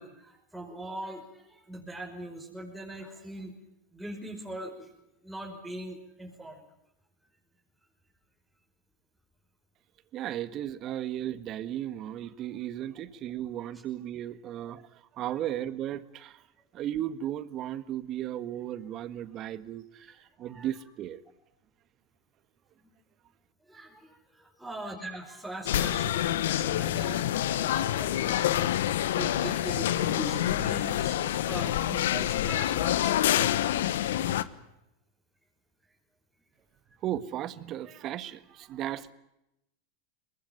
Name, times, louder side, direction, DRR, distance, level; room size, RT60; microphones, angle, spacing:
voice 1, 0.0-3.5 3.9-4.9 5.2-6.6 10.8-10.9 14.4-14.5 20.0-20.7 22.7-22.9 23.6-33.7, right 1 dB, 5° right, -2 dB, 5.5 m, -41 dB
voice 2, 10.1-16.4 16.7-21.2 37.0-39.1, right 11 dB, 40° right, 14 dB, 1.6 m, -35 dB
sound 1, 25.7-34.4, left 12 dB, 75° left, 1.2 m, -27 dB
23.0 x 20.0 x 9.6 m, 0.86 s
hypercardioid pair, 110°, 0 cm